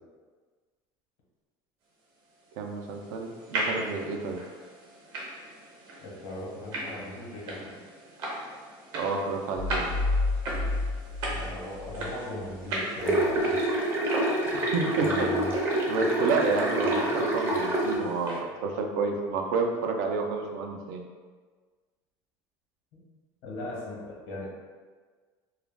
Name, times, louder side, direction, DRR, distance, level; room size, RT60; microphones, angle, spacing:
sound 1, 2.4-18.4, right 1 dB, 60° right, 0.8 m, -38 dB
voice 1, 2.6-4.4 8.9-10.2 14.5-15.3 15.9-21.0, right 4 dB, 85° right, 2 dB, 0.4 m, -30 dB
voice 2, 6.0-7.8 11.3-14.1 14.8-15.5 22.9-23.0 23.4-24.5, left 1 dB, 85° left, -5 dB, 1.0 m, -38 dB
sound 2, 9.6-12.2, left 2 dB, 50° left, 0.4 m, -30 dB
sound 3, 13.0-18.0, right 1 dB, 25° right, 0.5 m, -27 dB
2.3 x 2.1 x 3.2 m, 1.5 s
cardioid pair, 135°, 10 cm